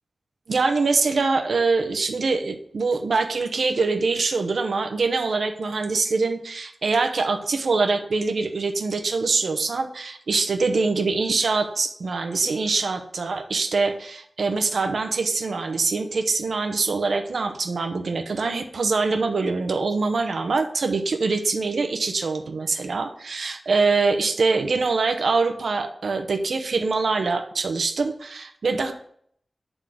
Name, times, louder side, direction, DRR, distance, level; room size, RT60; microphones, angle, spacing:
voice 1, 0.5-28.9, right 4 dB, 90° right, 6 dB, 0.8 m, -24 dB
8.0 x 3.8 x 6.3 m, 0.64 s
wide cardioid pair, 105°, 0 cm